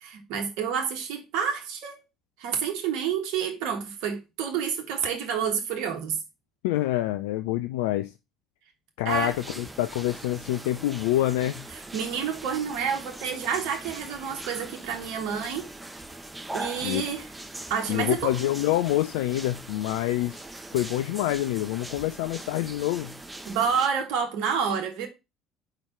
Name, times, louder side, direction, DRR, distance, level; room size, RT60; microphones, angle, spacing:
voice 1, 0.0-2.0 2.4-6.2 9.0-9.4 11.7-15.7 16.5-17.3 17.7-18.3 23.5-25.1, right 7 dB, 65° right, 1.2 m, -29 dB
voice 2, 6.6-8.1 9.0-11.6 16.8-17.0 17.9-20.4 20.7-23.1, left 14 dB, 70° left, 0.3 m, -26 dB
sound 1, 9.1-23.9, right 1 dB, 10° right, 1.0 m, -41 dB
4.9 x 4.4 x 5.6 m
figure-of-eight pair, 55°, 0 cm